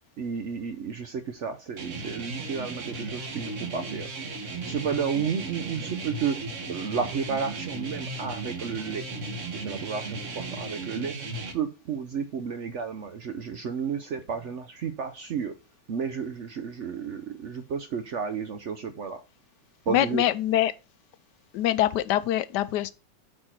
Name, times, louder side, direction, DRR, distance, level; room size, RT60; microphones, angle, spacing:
voice 1, 0.2-4.1 4.6-6.4 6.7-9.0 9.5-11.2 11.5-15.6 15.9-19.2 19.9-20.2, right 6 dB, 70° right, 0.6 m, -32 dB
sound 1, 1.8-11.5, right 3 dB, 45° right, 1.4 m, -36 dB
voice 2, 19.9-20.7 21.5-22.9, left 13 dB, 70° left, 1.1 m, -24 dB
8.8 x 4.4 x 4.3 m
omnidirectional pair, 2.1 m